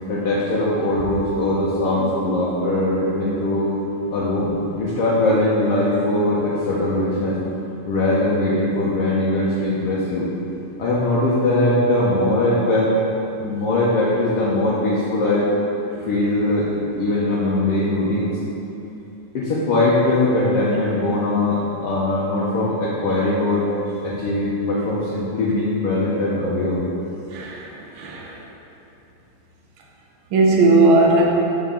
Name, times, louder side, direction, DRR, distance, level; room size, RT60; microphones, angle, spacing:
voice 1, 0.1-3.7 4.1-7.4 7.8-10.3 10.8-12.9 13.4-15.5 16.1-18.4 19.3-23.7 24.0-26.8, left 1 dB, 65° left, -7 dB, 1.7 m, -21 dB
voice 2, 27.3-27.6 28.0-28.3 30.3-31.2, right 2 dB, 75° right, -2 dB, 1.2 m, -16 dB
7.3 x 5.7 x 3.7 m, 2.9 s
omnidirectional pair, 3.3 m